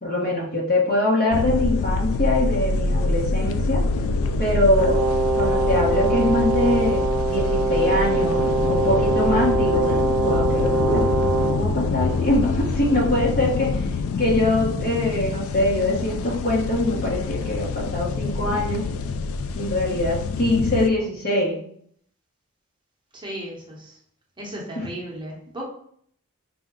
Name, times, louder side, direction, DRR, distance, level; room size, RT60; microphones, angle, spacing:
voice 1, 0.0-3.8 4.4-5.0 5.4-11.1 11.5-13.7 14.2-18.8 19.5-21.6 24.8-24.9, left 1 dB, 45° left, -4 dB, 1.2 m, -23 dB
sound 1, 1.3-20.9, left 3 dB, 65° left, 0.3 m, -25 dB
Brass instrument, 4.7-11.7, right 3 dB, 80° right, 0.6 m, -23 dB
voice 2, 23.1-23.9 24.4-25.7, right 1 dB, 20° right, -3 dB, 0.9 m, -35 dB
4.7 x 2.2 x 3.7 m, 0.63 s
head